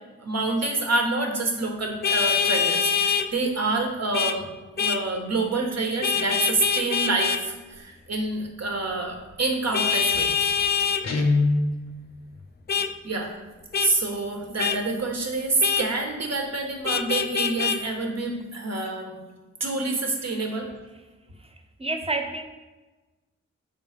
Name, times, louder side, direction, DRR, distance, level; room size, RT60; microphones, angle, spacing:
voice 1, 0.2-4.4 4.8-10.5 11.1-11.2 13.0-13.4 13.8-19.2 19.6-20.7, right 2 dB, 60° right, 2 dB, 1.3 m, -27 dB
Vehicle horn car horn honking, 2.0-3.3 4.1-4.4 4.8-5.0 6.0-7.4 9.7-11.0 12.7-12.9 13.7-13.9 14.6-14.8 15.6-15.9 16.8-17.8, left 6 dB, 35° left, 0.4 m, -24 dB
Guitar, 11.0-11.8, left 3 dB, 60° left, 0.8 m, -22 dB
voice 2, 21.4-22.4, right 3 dB, 20° right, 5 dB, 0.7 m, -30 dB
7.1 x 3.7 x 5.1 m, 1.2 s
wide cardioid pair, 85°, 29 cm